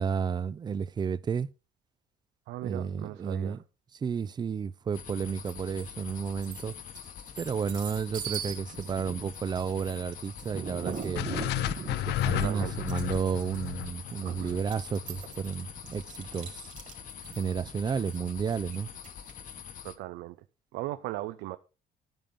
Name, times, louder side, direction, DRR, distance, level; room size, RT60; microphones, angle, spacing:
voice 1, 0.0-1.5 2.6-3.6 4.0-6.7 7.4-11.2 12.1-16.6 17.4-18.9, right 6 dB, 25° right, 0.4 m, -32 dB
voice 2, 2.5-3.6 12.3-12.8 14.2-14.5 19.8-20.4 20.7-21.6, right 16 dB, 90° right, 0.5 m, -38 dB
sound 1, 4.9-20.0, left 8 dB, 50° left, 1.1 m, -45 dB
sound 2, 5.5-5.9 6.3-19.5, right 6 dB, 45° right, 2.8 m, -41 dB
sound 3, 11.2-15.3, left 14 dB, 80° left, 0.6 m, -32 dB
10.5 x 8.9 x 3.6 m
cardioid pair, 110°, 17 cm